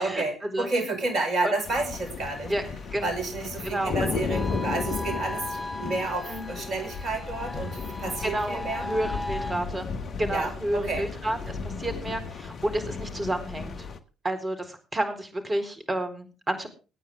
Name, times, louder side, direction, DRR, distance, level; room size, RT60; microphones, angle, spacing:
voice 1, 0.0-2.5 3.0-8.9 10.3-11.1, right 3 dB, 50° right, 8 dB, 5.4 m, -30 dB
sound 1, 1.6-14.0, left 5 dB, 50° left, 1.6 m, -34 dB
voice 2, 3.6-4.1 6.3-6.5 8.2-9.9 10.2-13.9 14.2-16.7, right 1 dB, 25° right, 7 dB, 4.2 m, -30 dB
sound 2, 4.3-9.5, left 1 dB, 5° left, 2.6 m, -37 dB
24.0 x 9.3 x 3.6 m, 0.33 s
hypercardioid pair, 50°, 0 cm